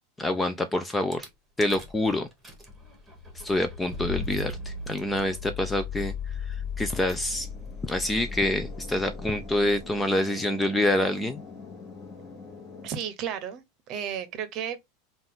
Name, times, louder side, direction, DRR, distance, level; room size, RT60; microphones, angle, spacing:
voice 1, 0.2-1.2 1.6-2.3 3.4-6.1 6.8-7.5 7.8-11.4, left 1 dB, 10° left, 0.4 m, -26 dB
Rattle / Car / Engine starting, 1.1-1.3 1.7-2.0 2.3-10.0, left 5 dB, 10° right, 1.4 m, -37 dB
sound 1, 7.3-12.9, left 4 dB, 30° left, 1.3 m, -45 dB
voice 2, 12.8-14.8, right 8 dB, 40° right, 0.9 m, -33 dB
3.8 x 2.4 x 3.8 m
supercardioid pair, 150°, 0 cm